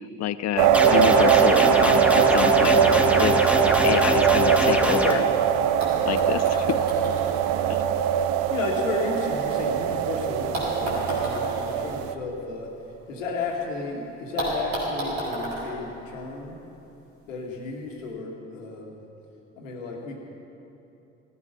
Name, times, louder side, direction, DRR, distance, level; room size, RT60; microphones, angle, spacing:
voice 1, 0.2-5.3 6.0-6.8 7.7-7.8, left 11 dB, 45° left, 14 dB, 0.7 m, -28 dB
sound 1, 0.6-12.1, right 9 dB, 65° right, 0.8 m, -22 dB
sound 2, 0.7-5.1, left 1 dB, 5° right, 1.4 m, -24 dB
sound 3, 5.8-9.9 10.5-13.5 13.8-13.9 14.4-16.8 17.8-17.9, right 1 dB, 85° right, 4.3 m, -34 dB
voice 2, 7.9-12.7 13.1-16.6 17.3-19.0 19.6-20.2, left 4 dB, 80° left, 0 dB, 2.0 m, -33 dB
17.0 x 14.5 x 5.3 m, 2.8 s
figure-of-eight pair, 50°, 38 cm